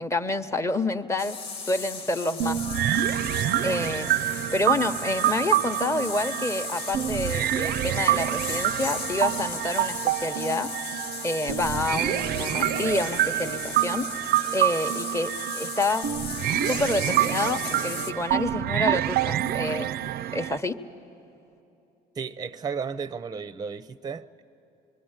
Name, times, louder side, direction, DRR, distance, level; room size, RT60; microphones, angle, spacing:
voice 1, 0.0-1.4 1.7-2.6 3.6-10.7 11.2-14.1 14.5-16.1 16.6-19.9 20.3-20.8, left 2 dB, 15° left, 0.9 m, -28 dB
sound 1, 1.2-18.1, left 4 dB, 85° left, 1.9 m, -36 dB
sound 2, 2.4-20.6, right 12 dB, 70° right, 0.5 m, -27 dB
voice 2, 22.2-24.4, right 6 dB, 25° right, 0.6 m, -34 dB
25.0 x 23.0 x 9.0 m
cardioid pair, 110°, 17 cm